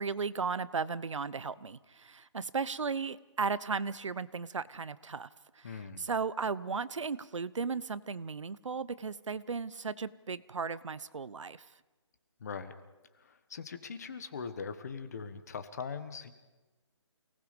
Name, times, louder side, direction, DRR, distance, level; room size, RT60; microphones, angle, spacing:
voice 1, 0.0-5.3 5.6-5.7 6.0-11.6, right 5 dB, 80° right, 17 dB, 0.9 m, -35 dB
voice 2, 5.6-6.0 12.4-12.7 13.1-16.3, left 5 dB, 35° left, 10 dB, 1.4 m, -41 dB
28.5 x 19.0 x 5.3 m, 1.1 s
hypercardioid pair, 170°, 16 cm